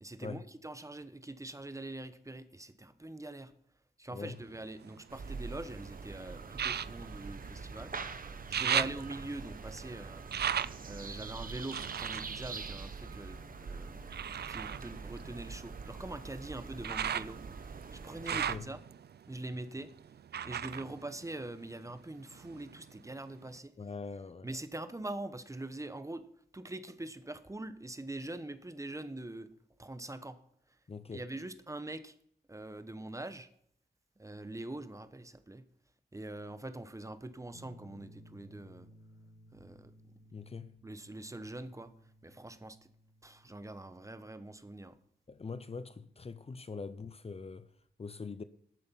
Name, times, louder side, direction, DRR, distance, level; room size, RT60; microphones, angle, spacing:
voice 1, 0.0-3.5 4.0-7.9 8.5-10.3 10.9-14.1 14.5-17.4 17.9-18.8 19.3-19.9 20.4-23.7 24.4-26.2 26.5-29.5 29.8-30.4 31.1-32.1 32.5-33.5 34.2-35.6 36.1-38.9 39.5-39.9 40.8-41.9 42.2-42.8 43.2-45.0, right 2 dB, 20° right, 1.0 m, -43 dB
sound 1, 4.3-5.7 6.5-8.0 8.3-13.5 14.1-21.9 22.3-23.1 23.6-23.7, right 9 dB, 70° right, 0.4 m, -38 dB
sound 2, 5.1-18.6, right 4 dB, 55° right, 1.1 m, -44 dB
voice 2, 18.3-18.7 23.8-24.5 30.9-31.3 40.3-40.7 45.3-47.7 48.0-48.4, left 4 dB, 35° left, 0.6 m, -43 dB
sound 3, 37.5-44.8, equal, 80° left, 1.3 m, -59 dB
12.5 x 8.7 x 5.8 m
wide cardioid pair, 90°, 17 cm